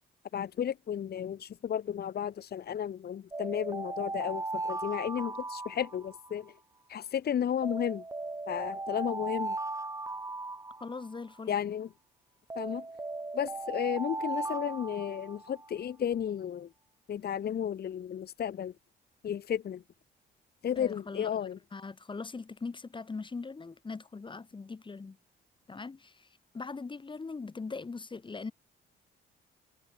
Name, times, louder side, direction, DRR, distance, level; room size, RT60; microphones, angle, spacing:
voice 1, 0.3-6.5 6.9-8.0 8.5-9.6 11.5-11.9 12.5-12.8 13.3-16.7 17.1-18.7 19.2-19.8 20.6-21.6, left 9 dB, 50° left, 1.1 m, -33 dB
sound 1, 3.3-6.5 7.6-11.4 12.5-15.7, right 3 dB, 15° right, 1.2 m, -37 dB
voice 2, 10.8-11.5 20.7-25.2 25.7-26.3 26.5-28.5, left 4 dB, 25° left, 1.2 m, -41 dB
cardioid pair, 90°, 20 cm